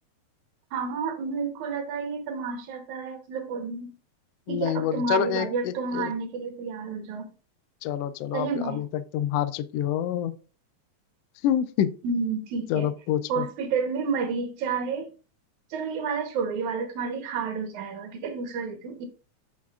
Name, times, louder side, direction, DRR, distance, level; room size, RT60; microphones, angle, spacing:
voice 1, 0.7-3.9 4.5-7.3 8.3-8.8 12.0-12.9 13.3-15.1 15.7-19.1, right 5 dB, 85° right, 2.6 m, -30 dB
voice 2, 4.5-6.1 7.8-10.3 11.4-11.9 12.7-13.5, left 10 dB, 85° left, 1.3 m, -27 dB
9.6 x 6.2 x 2.4 m
omnidirectional pair, 3.3 m